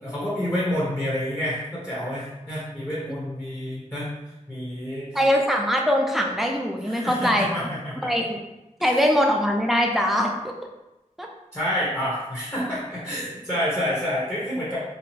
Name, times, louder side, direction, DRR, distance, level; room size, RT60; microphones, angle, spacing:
voice 1, 0.0-4.1 4.5-5.1 6.8-7.9 11.5-14.8, equal, 15° left, -8 dB, 0.9 m, -28 dB
voice 2, 5.1-7.7 8.0-8.4 8.8-10.6 11.2-11.3, equal, ahead, 1 dB, 0.4 m, -22 dB
2.7 x 2.0 x 2.9 m, 0.97 s
wide cardioid pair, 45°, 13 cm